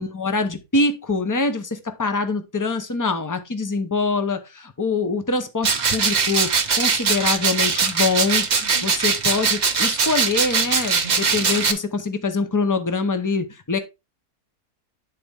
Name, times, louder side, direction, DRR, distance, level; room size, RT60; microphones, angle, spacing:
voice 1, 0.0-6.5 6.8-13.8, left 3 dB, 20° left, 0.5 m, -24 dB
sound 1, 5.6-11.7, right 5 dB, 40° right, 0.6 m, -21 dB
10.0 x 4.1 x 3.6 m
omnidirectional pair, 1.6 m